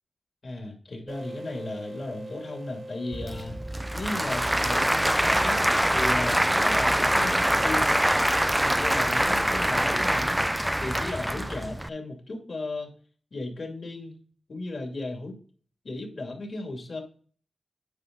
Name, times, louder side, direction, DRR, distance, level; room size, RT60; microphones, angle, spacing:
voice 1, 0.4-3.5 3.9-5.6 5.9-12.9 13.3-14.2 14.5-15.3 15.8-17.0, left 2 dB, 60° left, 2 dB, 2.6 m, -35 dB
sound 1, 1.1-6.4, right 1 dB, 55° right, 1.2 m, -44 dB
Applause / Crowd, 3.1-11.9, right 1 dB, 10° right, 0.3 m, -24 dB
9.8 x 5.0 x 3.9 m, 0.43 s
wide cardioid pair, 80°, 0 cm